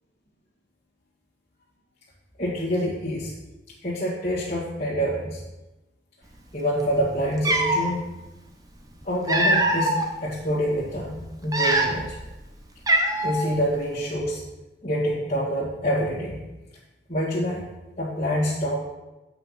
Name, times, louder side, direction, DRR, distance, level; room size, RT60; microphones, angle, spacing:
voice 1, 2.4-3.3 3.8-5.4 6.5-8.0 9.0-12.2 13.2-14.4 14.8-16.4 17.1-17.6 18.0-18.8, equal, 35° left, -10 dB, 2.0 m, -26 dB
Cat, 6.9-7.0 7.4-7.9 8.9-10.1 10.6-10.8 11.4-12.2 12.4-12.5 12.9-13.5, right 1 dB, 20° right, 0.7 m, -22 dB
7.9 x 5.9 x 5.6 m, 1.0 s
head